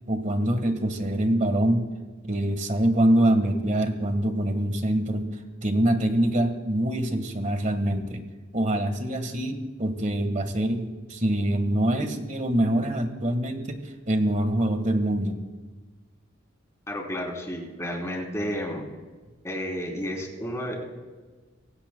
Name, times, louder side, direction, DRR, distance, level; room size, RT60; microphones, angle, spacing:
voice 1, 0.1-1.9 2.2-5.3 5.6-8.2 8.5-13.8 14.1-15.4, right 1 dB, 40° right, 7 dB, 1.5 m, -24 dB
voice 2, 16.9-18.8 19.4-20.9, equal, 15° left, 0 dB, 3.4 m, -31 dB
25.0 x 17.0 x 2.3 m, 1.3 s
head